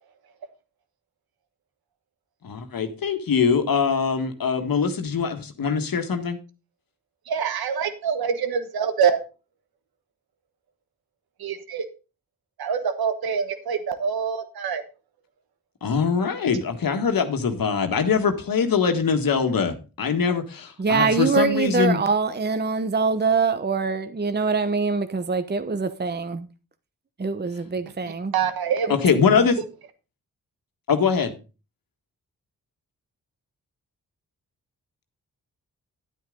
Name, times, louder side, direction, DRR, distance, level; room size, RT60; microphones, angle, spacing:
voice 1, 2.4-6.4 15.8-22.0 28.9-29.6 30.9-31.3, left 5 dB, 70° left, 1.6 m, -22 dB
voice 2, 7.3-9.2 11.4-11.8 12.6-14.8 28.3-28.9, right 7 dB, 85° right, 1.3 m, -25 dB
voice 3, 20.8-26.5 27.2-28.3, right 4 dB, 30° right, 0.9 m, -24 dB
10.0 x 9.2 x 3.8 m
supercardioid pair, 40°, 36 cm